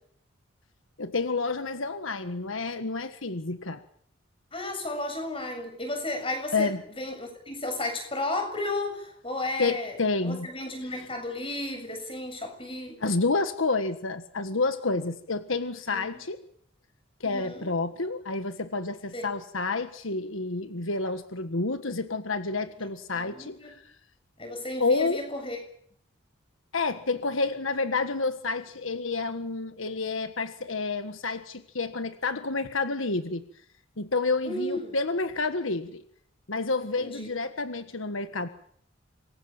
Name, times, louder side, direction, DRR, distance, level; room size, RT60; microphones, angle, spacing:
voice 1, 1.0-3.8 6.5-6.8 9.6-10.5 10.9-11.1 13.0-16.4 17.2-23.8 24.8-25.2 26.7-33.4 34.0-36.0 36.5-38.5, left 3 dB, 80° left, 9 dB, 1.6 m, -29 dB
voice 2, 4.5-6.7 7.0-10.0 10.2-13.0 15.9-16.1 17.3-17.7 19.1-19.3 23.1-23.7 24.4-25.6 34.5-35.0 36.9-37.3, left 2 dB, 25° left, 6 dB, 7.2 m, -33 dB
27.0 x 22.0 x 7.3 m, 0.65 s
head